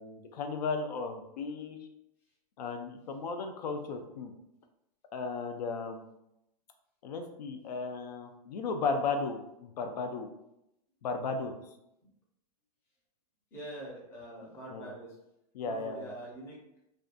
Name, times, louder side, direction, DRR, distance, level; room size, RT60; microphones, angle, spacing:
voice 1, 0.0-1.8 2.6-4.3 5.1-6.1 7.0-10.3 11.0-11.5 14.7-14.9 15.5-16.1, left 4 dB, 90° left, 5 dB, 0.5 m, -35 dB
voice 2, 13.5-15.1 15.6-16.6, right 1 dB, 10° left, -5 dB, 0.5 m, -44 dB
2.6 x 2.2 x 2.4 m, 0.83 s
supercardioid pair, 170°, 20 cm